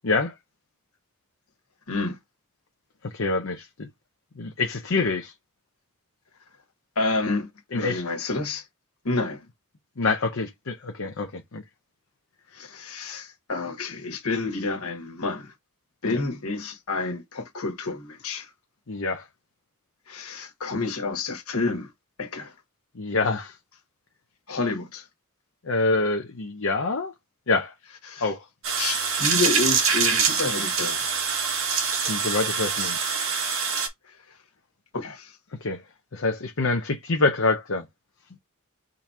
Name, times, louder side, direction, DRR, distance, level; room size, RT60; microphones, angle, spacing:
voice 1, 0.0-0.3 3.1-3.9 4.4-5.3 7.7-8.0 10.0-11.6 16.0-16.2 18.9-19.2 23.0-23.5 25.7-27.1 27.5-27.7 28.2-28.4 32.1-33.0 35.6-35.8 36.1-37.9, left 3 dB, 60° left, 0.7 m, -26 dB
voice 2, 1.9-2.2 6.9-7.5 7.7-8.7 9.0-9.4 12.5-15.5 16.0-18.5 20.1-21.9 22.2-22.5 24.5-25.1 28.0-28.3 28.7-31.0 34.9-35.4, left 3 dB, 85° left, 1.5 m, -29 dB
sound 1, 28.6-33.9, right 5 dB, 65° right, 1.6 m, -24 dB
3.8 x 2.9 x 4.6 m
head